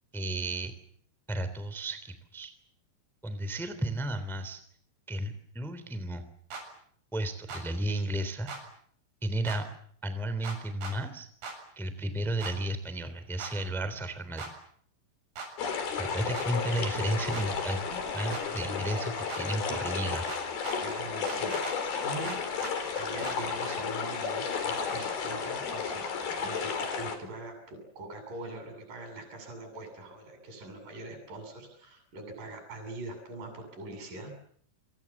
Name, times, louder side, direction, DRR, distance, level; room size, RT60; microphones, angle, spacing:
voice 1, 0.1-0.7 1.3-2.5 3.2-4.6 5.1-6.2 7.1-8.5 9.2-9.7 10.0-11.3 11.7-14.5 15.9-20.2, right 1 dB, ahead, 11 dB, 1.9 m, -33 dB
sound 1, 6.5-6.6 7.5-7.6 8.5-8.6 9.5-9.6 10.4-11.0 11.4-11.6 12.4-12.5 13.4-13.5 14.4-14.5 15.4-15.5 16.3-16.5 17.3-17.5 18.3-18.5 19.3-19.4 20.3-20.8 21.3-21.8 22.2-22.8 23.2-23.4, right 4 dB, 90° right, 9.9 m, -39 dB
sound 2, 15.6-27.2, left 6 dB, 50° left, 5.3 m, -33 dB
voice 2, 20.8-21.6 22.0-34.3, right 2 dB, 40° right, 5 dB, 9.2 m, -43 dB
27.5 x 26.5 x 7.3 m, 0.63 s
omnidirectional pair, 5.8 m